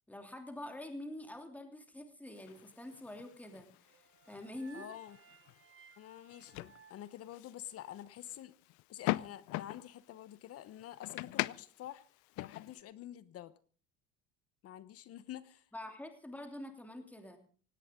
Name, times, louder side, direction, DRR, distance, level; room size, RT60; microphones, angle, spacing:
voice 1, 0.1-4.9 15.7-17.4, left 1 dB, 5° left, 6 dB, 2.9 m, -46 dB
sound 1, 2.4-12.8, left 20 dB, 65° left, 0.6 m, -43 dB
sound 2, 3.8-8.0, right 6 dB, 40° right, 1.6 m, -60 dB
voice 2, 4.7-5.2 6.0-8.5 8.9-12.0 12.4-13.5 14.6-15.7, left 12 dB, 50° left, 16 dB, 1.0 m, -48 dB
18.0 x 17.0 x 3.7 m, 0.42 s
cardioid pair, 125°, 31 cm